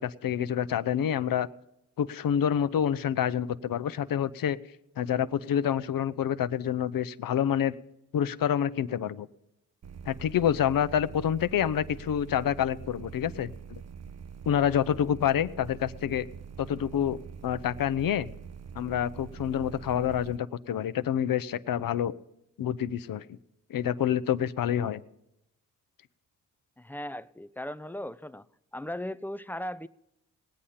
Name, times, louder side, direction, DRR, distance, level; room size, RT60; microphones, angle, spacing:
voice 1, 0.0-1.5 2.0-4.6 5.0-7.7 8.1-9.3 10.0-13.8 14.5-16.3 16.6-18.3 18.8-22.1 22.6-23.4 23.7-25.0, left 9 dB, 55° left, 15 dB, 0.7 m, -27 dB
sound 1, 9.8-20.4, right 6 dB, 40° right, 0.6 m, -44 dB
voice 2, 26.8-28.5 28.7-29.9, left 1 dB, 5° left, 16 dB, 0.4 m, -37 dB
19.5 x 8.5 x 5.7 m, 0.86 s
supercardioid pair, 50°, 41 cm